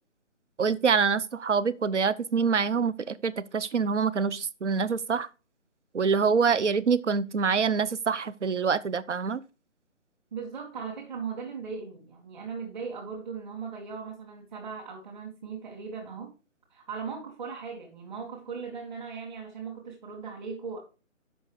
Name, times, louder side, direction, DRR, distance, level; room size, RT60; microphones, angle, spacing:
voice 1, 0.6-5.3 5.9-9.4, right 5 dB, 65° right, 0.8 m, -25 dB
voice 2, 10.3-16.3 16.7-20.8, right 5 dB, 35° right, 2.2 m, -38 dB
7.7 x 5.9 x 4.8 m
figure-of-eight pair, 150°, 38 cm